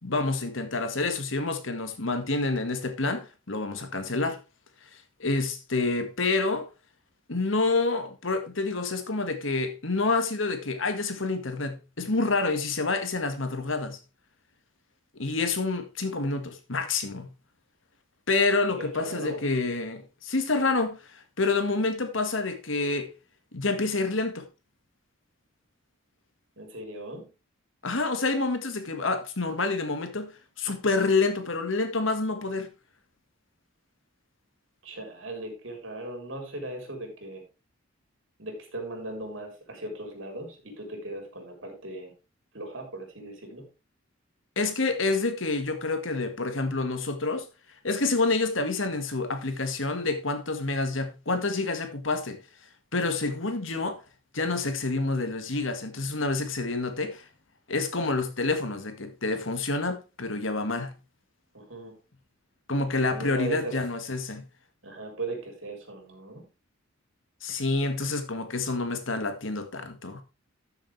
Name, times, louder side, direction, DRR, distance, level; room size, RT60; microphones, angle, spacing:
voice 1, 0.0-4.4 5.2-6.7 7.3-14.0 15.2-17.3 18.3-23.1 23.5-24.4 27.8-30.3 30.6-32.7 44.5-47.5 47.8-52.4 52.9-54.0 54.3-57.2 57.7-60.9 62.7-64.4 67.4-70.2, left 3 dB, 75° left, 1.8 m, -28 dB
voice 2, 18.8-19.4 26.6-27.3 34.8-37.4 38.4-42.1 42.5-43.6 61.5-62.0 63.1-63.8 64.8-66.4, right 2 dB, 70° right, 4.2 m, -38 dB
13.0 x 6.9 x 3.3 m
head